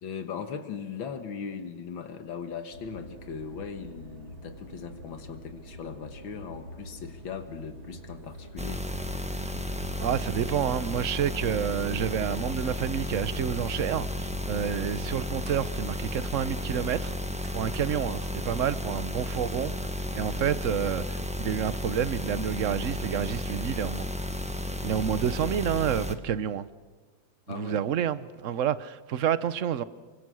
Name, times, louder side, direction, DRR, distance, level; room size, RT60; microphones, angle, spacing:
voice 1, 0.0-8.8 27.5-27.8, left 6 dB, 80° left, 7 dB, 2.2 m, -39 dB
sound 1, 2.7-18.1, equal, 80° right, 3.0 m, -46 dB
sound 2, 8.6-26.1, left 1 dB, 5° right, 1.0 m, -33 dB
voice 2, 10.0-17.1 17.5-19.9 20.1-24.0 24.8-26.7 27.5-29.8, right 9 dB, 55° right, 15 dB, 0.9 m, -29 dB
27.5 x 24.5 x 6.3 m, 1.5 s
omnidirectional pair, 2.1 m